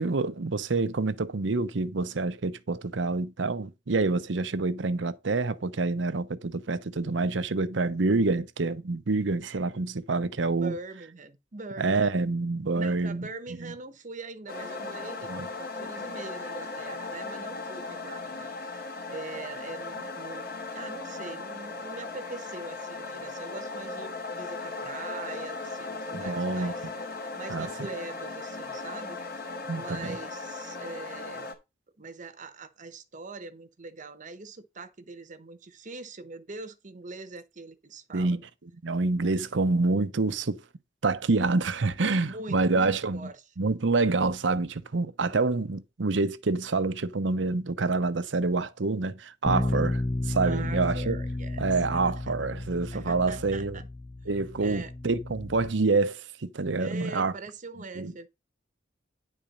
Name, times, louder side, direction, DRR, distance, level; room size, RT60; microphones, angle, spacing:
voice 1, 0.0-10.8 11.8-13.3 13.6-13.7 15.3-15.5 26.1-26.7 27.5-27.7 29.7-30.2 38.1-38.4 38.8-40.6 41.0-43.3 43.6-51.2 51.6-53.8 54.3-57.3 58.0-58.1, right 3 dB, 85° right, 0.8 m, -27 dB
voice 2, 10.6-12.1 12.7-15.3 15.6-26.9 27.4-29.2 29.7-31.5 32.0-38.4 42.2-43.4 49.5-49.8 50.4-51.6 51.9-52.1 52.9-53.8 54.2-54.3 54.6-54.9 56.8-58.3, right 3 dB, 45° right, 0.9 m, -42 dB
sound 1, 14.5-31.5, left 3 dB, 55° left, 2.2 m, -37 dB
Bass guitar, 49.4-55.7, left 2 dB, 20° left, 0.4 m, -32 dB
9.9 x 4.3 x 5.1 m
head